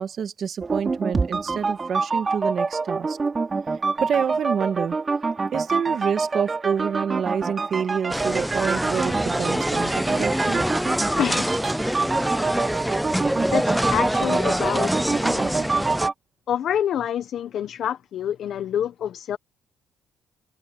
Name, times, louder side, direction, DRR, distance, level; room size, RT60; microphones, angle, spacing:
voice 1, 0.0-3.2 3.7-5.0 5.5-10.6, right 7 dB, 55° right, 2.0 m, -27 dB
sound 1, 0.6-16.1, right 4 dB, 30° right, 3.0 m, -26 dB
sound 2, 8.1-16.1, equal, ahead, 0.4 m, -25 dB
voice 2, 11.2-11.5 13.2-15.6 16.5-19.4, left 10 dB, 65° left, 1.0 m, -27 dB
cardioid pair, 95°, 0 cm